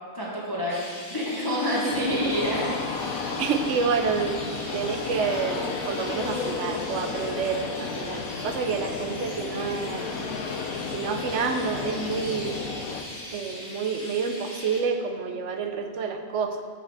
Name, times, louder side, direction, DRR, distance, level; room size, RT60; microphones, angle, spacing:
voice 1, 0.1-0.8 1.1-2.7, left 1 dB, 15° left, -5 dB, 1.1 m, -27 dB
Chirp tweet, 0.7-14.8, left 1 dB, 50° left, 2.0 m, -40 dB
voice 2, 1.7-2.4 3.4-10.2 10.9-12.6 13.3-16.6, right 5 dB, 65° right, 6 dB, 0.9 m, -29 dB
sound 1, 1.9-13.0, left 5 dB, 85° left, 1.1 m, -33 dB
7.2 x 6.9 x 4.7 m, 2.1 s
omnidirectional pair, 1.4 m